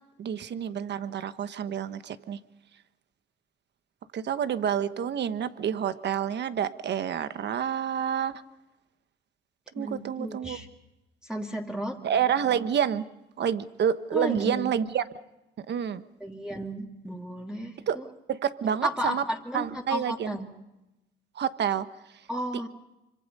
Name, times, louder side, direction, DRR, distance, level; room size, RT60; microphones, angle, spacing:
voice 1, 0.2-2.4 4.1-8.4 9.7-10.6 12.0-13.0 13.4-15.0 15.7-16.0 17.9-18.0 18.3-19.2 19.5-20.4 21.3-21.9, right 8 dB, 60° right, 12 dB, 1.2 m, -28 dB
voice 2, 9.8-10.7 11.2-12.0 14.1-14.7 16.2-18.0 18.8-20.5 22.3-22.7, equal, 5° right, 0 dB, 2.6 m, -33 dB
26.0 x 25.0 x 5.4 m, 0.96 s
cardioid pair, 90°, 20 cm